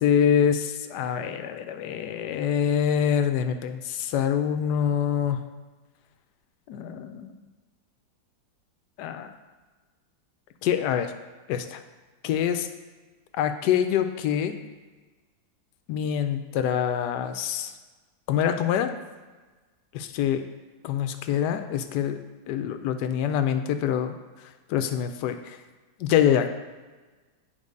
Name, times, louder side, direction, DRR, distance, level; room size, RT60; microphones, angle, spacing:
voice 1, 0.0-5.4 6.7-7.3 9.0-9.3 10.6-11.1 11.5-11.8 12.2-12.7 13.4-14.6 15.9-17.7 18.3-18.9 19.9-20.4 20.8-22.2 22.5-24.1 24.7-25.6 26.0-26.5, left 9 dB, 70° left, 8 dB, 1.1 m, -25 dB
8.8 x 3.9 x 5.2 m, 1.3 s
omnidirectional pair, 2.1 m